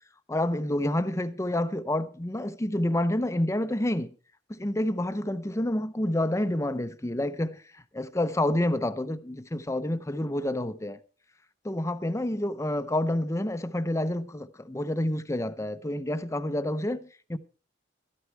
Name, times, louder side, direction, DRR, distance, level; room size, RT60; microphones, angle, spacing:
voice 1, 0.3-4.1 4.5-7.6 7.9-11.0 11.6-17.4, left 1 dB, 15° left, 0.7 m, -28 dB
13.0 x 11.5 x 4.6 m
head